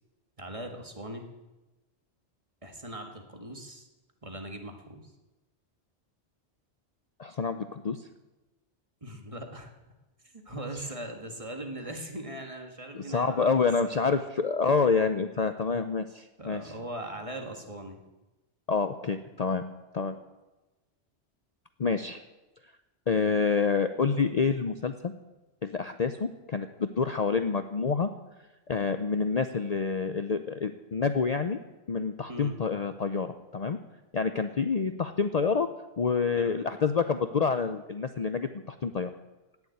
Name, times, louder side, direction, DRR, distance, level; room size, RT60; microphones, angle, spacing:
voice 1, 0.4-1.3 2.6-3.9 4.2-5.1 9.0-9.7 10.5-13.5 13.9-14.1 16.4-18.0 32.3-32.6 36.4-36.5, right 1 dB, 30° right, 4 dB, 1.9 m, -40 dB
voice 2, 7.2-8.1 10.7-10.9 12.9-16.7 18.7-19.6 19.9-20.1 21.8-22.2 23.1-25.1 25.6-28.1 28.7-31.6 31.9-33.8 34.1-35.7 36.0-39.1, left 5 dB, 45° left, 9 dB, 0.7 m, -28 dB
17.0 x 7.2 x 9.5 m, 1.1 s
omnidirectional pair, 1.2 m